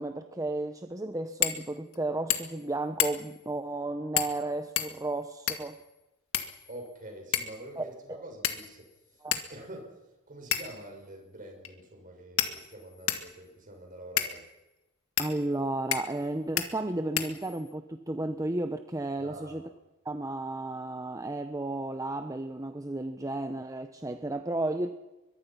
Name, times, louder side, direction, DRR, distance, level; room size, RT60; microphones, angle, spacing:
voice 1, 0.0-5.8 7.8-8.2 9.2-9.4 15.2-19.6 20.0-24.9, right 2 dB, 15° right, 8 dB, 1.0 m, -33 dB
sound 1, 1.4-1.6 1.9-2.0 2.3-2.6 3.0-3.4 4.2-4.4 4.8-5.8 6.3-6.9 7.3-7.6 8.4-8.9 9.3-9.5 10.5-10.8 11.6-11.7 12.4-13.3 14.2-14.3 15.2-15.3 15.9-16.2 16.6-16.7 17.2-17.7, left 10 dB, 65° left, 2.1 m, -30 dB
voice 2, 6.7-14.4 19.2-19.6, right 1 dB, 40° right, 3 dB, 6.3 m, -46 dB
23.5 x 22.5 x 5.9 m, 1.0 s
head